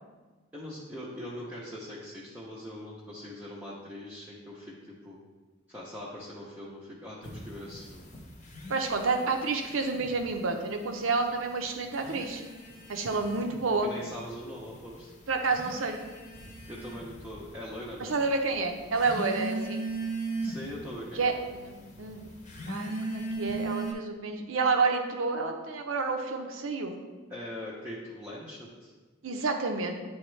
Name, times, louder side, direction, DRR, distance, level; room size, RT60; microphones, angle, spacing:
voice 1, 0.5-5.2 5.7-8.0 13.8-15.1 16.7-18.2 20.4-21.3 27.3-28.9, equal, 5° right, -6 dB, 0.7 m, -41 dB
sound 1, 7.2-10.3 10.6-11.4 11.8-23.9, right 2 dB, 40° left, 0.9 m, -38 dB
voice 2, 8.7-12.4 12.9-13.9 15.3-16.0 18.0-19.8 21.1-22.3 22.7-27.0 29.2-30.0, right 4 dB, 75° right, 4 dB, 0.7 m, -29 dB
8.7 x 3.5 x 3.2 m, 1.3 s
head